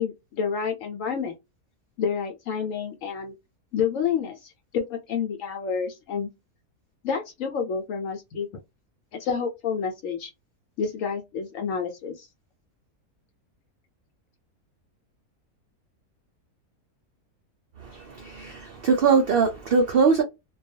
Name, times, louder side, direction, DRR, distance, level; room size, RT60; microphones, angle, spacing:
voice 1, 0.0-1.3 2.0-3.3 3.7-6.3 7.0-8.5 9.1-10.3 10.8-12.3, left 6 dB, 70° left, 0.9 m, -29 dB
voice 2, 17.8-20.2, right 5 dB, 80° right, 0.5 m, -22 dB
2.3 x 2.3 x 2.6 m
omnidirectional pair, 1.6 m